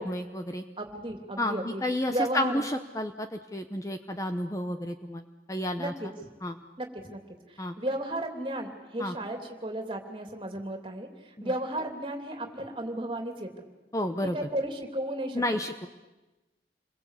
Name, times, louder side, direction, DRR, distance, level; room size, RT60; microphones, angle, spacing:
voice 1, 0.0-0.6 1.4-5.2 5.5-5.9 6.4-6.6 7.6-7.7 9.0-9.1 11.4-11.5 13.9-14.4 15.3-15.9, left 1 dB, 20° left, 7 dB, 1.0 m, -31 dB
voice 2, 0.8-1.8 2.1-2.6 5.8-6.1 6.8-7.2 7.5-13.5 14.2-15.6, right 1 dB, 30° right, 4 dB, 3.0 m, -34 dB
29.0 x 22.0 x 8.4 m, 1.1 s
head